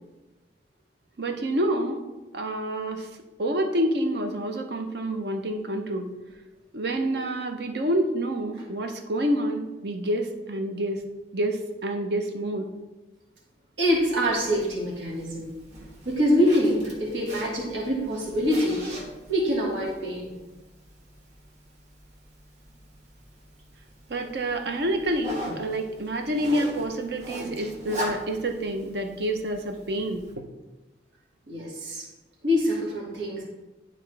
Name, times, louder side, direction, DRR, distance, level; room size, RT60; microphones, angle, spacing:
voice 1, 1.2-2.0 2.3-3.1 3.4-6.1 6.7-11.0 11.3-12.7 24.1-30.2, right 1 dB, 65° right, 4 dB, 0.8 m, -28 dB
voice 2, 13.8-15.6 16.0-18.8 19.3-20.3 31.5-32.1 32.4-33.4, equal, 85° right, -4 dB, 1.8 m, -25 dB
Zipper (clothing), 13.9-30.3, equal, 40° right, 1.3 m, -41 dB
11.5 x 3.9 x 3.3 m, 1.1 s
head